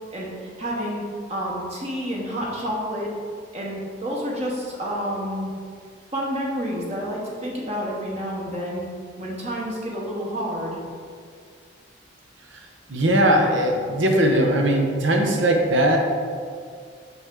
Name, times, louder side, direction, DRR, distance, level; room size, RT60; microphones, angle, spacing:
voice 1, 0.1-1.0 1.3-3.1 3.5-5.5 6.1-8.9 9.2-10.8, equal, 35° right, -4 dB, 1.0 m, -29 dB
voice 2, 12.9-16.0, right 1 dB, 80° right, 1 dB, 1.0 m, -19 dB
5.9 x 5.9 x 3.8 m, 2.1 s
head